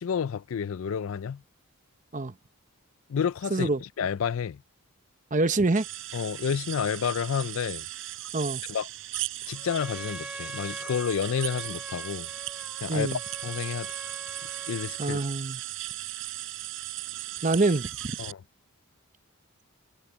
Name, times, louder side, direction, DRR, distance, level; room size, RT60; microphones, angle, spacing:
voice 1, 0.0-1.4 3.1-4.6 6.1-7.9 8.7-8.9 9.5-12.3 12.8-13.9 14.7-15.2 18.2-18.4, left 7 dB, 65° left, 0.4 m, -30 dB
voice 2, 3.5-3.8 5.3-5.9 8.3-8.6 12.9-13.2 15.0-15.6 17.4-17.9, right 2 dB, 35° right, 0.9 m, -25 dB
sound 1, 5.8-18.3, right 15 dB, 60° right, 4.4 m, -37 dB
Trumpet, 9.5-15.0, right 1 dB, 5° right, 0.6 m, -43 dB
head